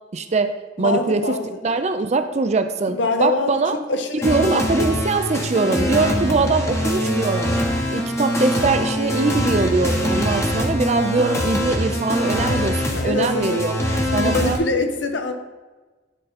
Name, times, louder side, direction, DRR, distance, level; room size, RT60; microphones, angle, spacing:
voice 1, 0.1-1.2 1.6-3.8 4.2-7.5 7.9-13.7 14.1-14.6, right 3 dB, 35° right, 8 dB, 0.4 m, -22 dB
voice 2, 0.8-1.6 2.8-3.5 3.9-4.9 12.9-13.6 14.1-15.3, left 3 dB, 75° left, 6 dB, 0.8 m, -24 dB
sound 1, 4.2-14.6, equal, 15° left, 0.9 m, -23 dB
10.0 x 3.8 x 4.2 m, 1.2 s
head